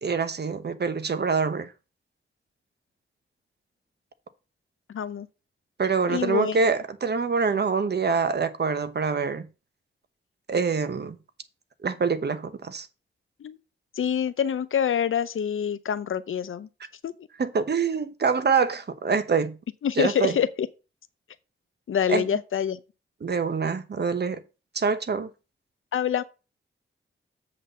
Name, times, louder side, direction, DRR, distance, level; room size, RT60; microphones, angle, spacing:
voice 1, 0.0-1.7 5.8-9.5 10.5-11.2 11.8-12.9 17.4-19.6 20.0-20.3 22.1-22.2 23.2-24.4 24.7-25.3, right 5 dB, 55° right, 1.0 m, -25 dB
voice 2, 4.9-5.3 6.1-6.6 13.4-13.6 13.9-16.7 17.0-17.3 19.8-20.7 21.9-22.8 25.9-26.2, left 8 dB, 75° left, 0.7 m, -26 dB
7.6 x 4.0 x 6.7 m
cardioid pair, 65°, 21 cm